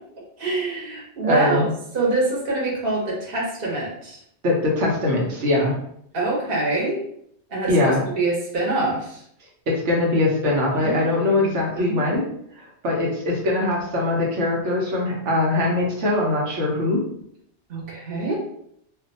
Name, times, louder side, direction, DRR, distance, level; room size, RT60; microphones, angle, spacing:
voice 1, 0.4-1.6 1.9-4.2 6.1-7.0 7.5-9.2 10.7-11.0 11.3-11.4 11.8-12.0 17.7-18.3, right 2 dB, 55° right, -3 dB, 1.1 m, -25 dB
voice 2, 1.2-1.7 4.4-5.7 7.7-8.0 9.7-12.3 12.6-17.0, left 2 dB, 90° right, -3 dB, 1.1 m, -22 dB
2.6 x 2.2 x 3.8 m, 0.70 s
omnidirectional pair, 1.2 m